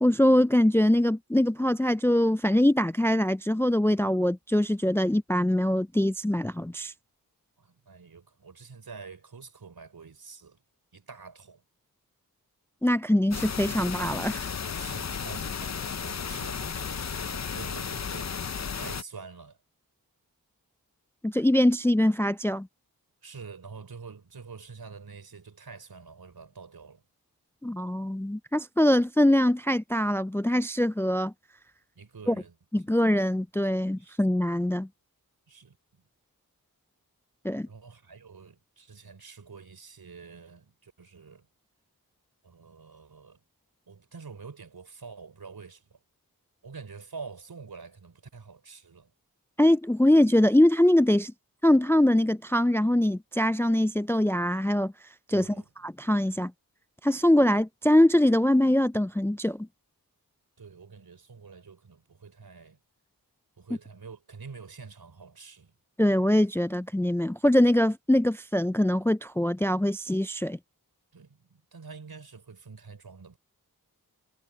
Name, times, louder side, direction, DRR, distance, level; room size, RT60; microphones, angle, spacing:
voice 1, 0.0-6.9 12.8-14.5 21.2-22.7 27.6-31.3 32.3-32.4 32.7-34.9 37.4-37.7 49.6-51.3 51.6-54.9 55.3-55.5 55.8-56.5 57.0-59.7 66.0-70.6, left 1 dB, 5° left, 0.4 m, -23 dB
voice 2, 7.6-10.6 10.9-11.6 14.7-18.3 18.7-19.6 23.2-27.0 32.0-32.9 34.0-34.2 35.5-36.0 37.7-41.5 42.4-43.4 43.9-46.0 46.6-49.1 55.3-55.7 60.6-62.8 63.6-65.7 71.1-73.4, right 5 dB, 75° right, 3.8 m, -46 dB
sound 1, 13.3-19.0, left 6 dB, 45° left, 0.7 m, -34 dB
wide cardioid pair, 65°, 37 cm